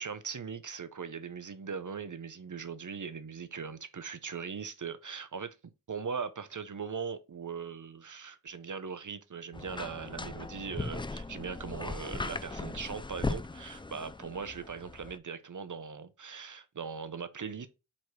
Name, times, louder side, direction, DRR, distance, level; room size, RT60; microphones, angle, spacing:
voice 1, 0.0-5.6 5.9-17.7, right 6 dB, 55° right, 0.8 m, -40 dB
sound 1, 9.5-15.2, left 3 dB, 15° left, 0.3 m, -38 dB
4.7 x 4.2 x 4.7 m
wide cardioid pair, 65°, 36 cm